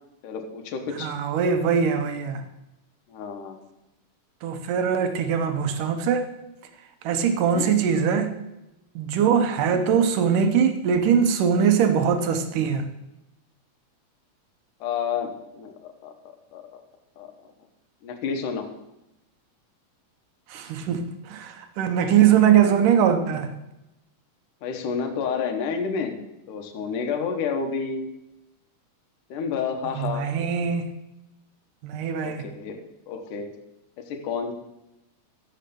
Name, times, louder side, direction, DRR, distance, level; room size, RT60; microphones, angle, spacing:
voice 1, 0.2-1.1 3.1-3.6 7.3-7.7 14.8-16.1 16.5-16.6 17.2-17.3 18.0-18.7 24.6-28.1 29.3-30.2 32.2-32.8 33.1-33.5 34.1-34.5, left 6 dB, 80° left, 5 dB, 2.8 m, -30 dB
voice 2, 1.0-2.4 4.4-6.3 7.0-8.3 9.0-12.8 20.5-23.5 29.8-30.9 31.8-32.5, right 7 dB, 90° right, 7 dB, 2.6 m, -22 dB
13.0 x 8.0 x 6.9 m, 0.92 s
omnidirectional pair, 3.6 m